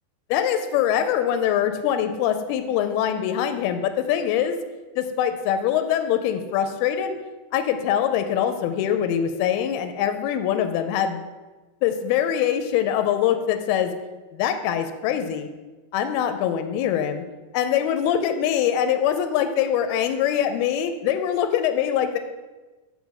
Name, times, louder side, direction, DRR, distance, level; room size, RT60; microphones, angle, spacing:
voice 1, 0.3-4.6 5.0-7.1 7.5-11.3 11.8-13.9 14.3-15.5 15.9-17.2 17.5-22.2, left 9 dB, 85° left, 8 dB, 2.4 m, -23 dB
5.2 x 5.2 x 6.3 m, 1.2 s
omnidirectional pair, 4.5 m